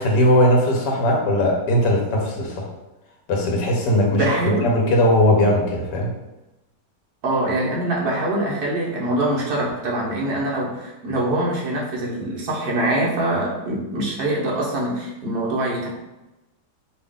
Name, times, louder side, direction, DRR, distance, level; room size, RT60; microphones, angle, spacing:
voice 1, 0.0-2.7 3.3-4.4 4.6-6.1, left 1 dB, 85° left, 0 dB, 1.4 m, -19 dB
voice 2, 4.1-4.7 7.2-15.9, right 1 dB, 65° right, -3 dB, 1.5 m, -24 dB
5.0 x 2.4 x 3.5 m, 1.0 s
omnidirectional pair, 1.8 m